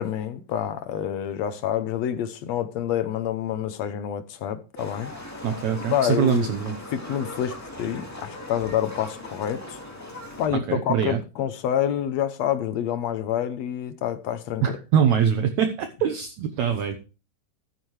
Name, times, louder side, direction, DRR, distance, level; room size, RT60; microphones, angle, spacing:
voice 1, 0.0-5.1 5.9-6.5 6.9-9.8 10.4-14.8, left 10 dB, 75° left, 1.6 m, -27 dB
Livestock farm animals working animals, 4.8-10.5, left 1 dB, 10° left, 1.2 m, -39 dB
voice 2, 5.4-6.8 10.7-11.2 14.6-17.0, right 8 dB, 70° right, 2.0 m, -23 dB
13.0 x 9.9 x 3.2 m
omnidirectional pair, 3.8 m